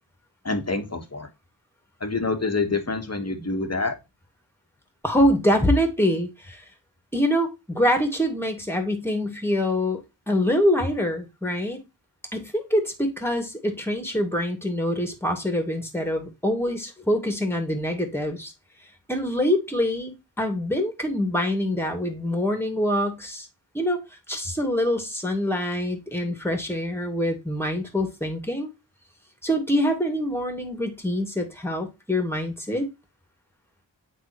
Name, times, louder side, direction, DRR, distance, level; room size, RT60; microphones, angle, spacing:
voice 1, 0.4-1.3 2.0-4.0, left 3 dB, 35° left, 1.4 m, -27 dB
voice 2, 5.0-6.6 7.1-10.0 10.3-11.8 12.3-18.5 19.1-23.5 23.7-24.0 24.3-28.7 29.4-32.9, equal, 5° left, 2.0 m, -25 dB
9.0 x 3.8 x 3.0 m
cardioid pair, 40°, 45 cm